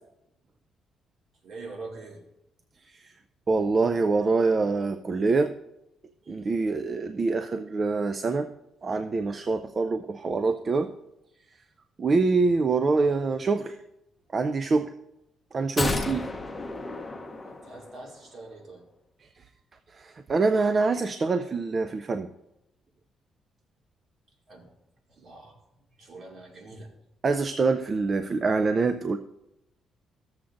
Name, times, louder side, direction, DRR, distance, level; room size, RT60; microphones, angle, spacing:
voice 1, 1.4-2.2 17.4-18.8 19.4-19.6 24.5-24.7 25.1-25.6 25.9-26.9, right 3 dB, 55° right, 0 dB, 2.2 m, -44 dB
voice 2, 3.5-5.5 6.3-8.5 8.8-10.9 12.0-13.8 14.3-14.9 15.5-16.3 19.9-22.3 27.2-29.2, right 3 dB, 40° right, 9 dB, 0.4 m, -25 dB
sound 1, 15.8-18.1 18.4-18.5, left 2 dB, 20° left, 0.8 m, -32 dB
14.5 x 7.2 x 2.5 m, 0.87 s
cardioid pair, 90°, 0 cm